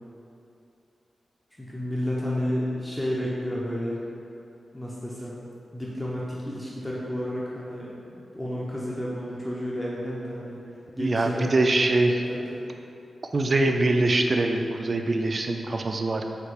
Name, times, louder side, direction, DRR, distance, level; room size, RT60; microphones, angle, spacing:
voice 1, 1.6-4.0 4.7-5.4 5.7-10.6 10.9-12.7, equal, 10° left, -6 dB, 0.7 m, -31 dB
voice 2, 11.0-12.2 13.3-16.3, right 2 dB, 50° right, 4 dB, 0.3 m, -23 dB
5.7 x 2.4 x 3.4 m, 2.6 s
cardioid pair, 45°, 0 cm